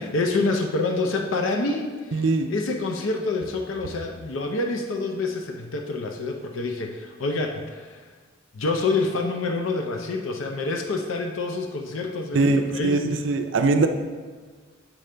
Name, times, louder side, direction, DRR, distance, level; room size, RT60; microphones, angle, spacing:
voice 1, 0.0-8.0 8.5-13.0, left 3 dB, 80° left, 3 dB, 0.5 m, -27 dB
voice 2, 2.1-2.5 12.3-13.9, right 3 dB, 70° right, 7 dB, 0.5 m, -21 dB
7.5 x 5.2 x 3.3 m, 1.4 s
head